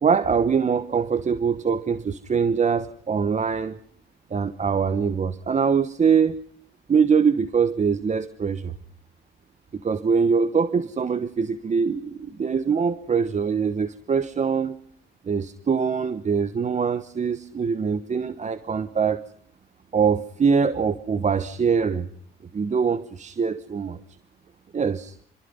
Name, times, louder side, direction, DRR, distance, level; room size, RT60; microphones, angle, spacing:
voice 1, 0.0-3.8 4.3-6.4 6.9-8.7 9.7-14.8 15.2-19.2 19.9-22.1 22.5-24.0 24.7-25.1, right 6 dB, 35° right, 13 dB, 1.0 m, -23 dB
27.0 x 23.0 x 5.5 m, 0.63 s
cardioid pair, 90°, 20 cm